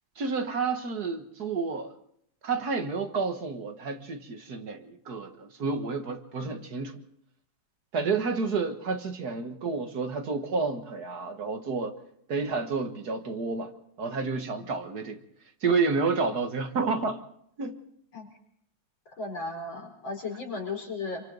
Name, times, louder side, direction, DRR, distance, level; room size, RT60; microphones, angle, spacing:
voice 1, 0.2-1.9 2.4-7.0 7.9-12.0 12.3-13.7 14.0-15.2 15.6-17.2 17.6-17.8, right 4 dB, 55° right, 2.0 m, -30 dB
voice 2, 19.2-21.2, left 3 dB, 85° left, 5.4 m, -35 dB
27.5 x 24.5 x 4.0 m
omnidirectional pair, 2.1 m